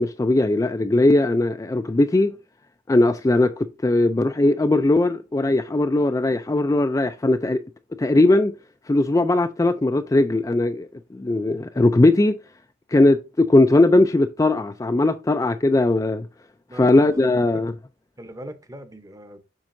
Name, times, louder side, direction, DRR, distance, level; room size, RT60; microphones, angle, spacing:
voice 1, 0.0-2.3 2.9-7.6 8.0-8.5 8.9-12.3 12.9-16.3 16.7-17.7, left 2 dB, 15° left, 0.3 m, -19 dB
voice 2, 16.7-17.6 18.2-19.4, right 1 dB, 20° right, 0.8 m, -40 dB
7.4 x 6.1 x 2.6 m
head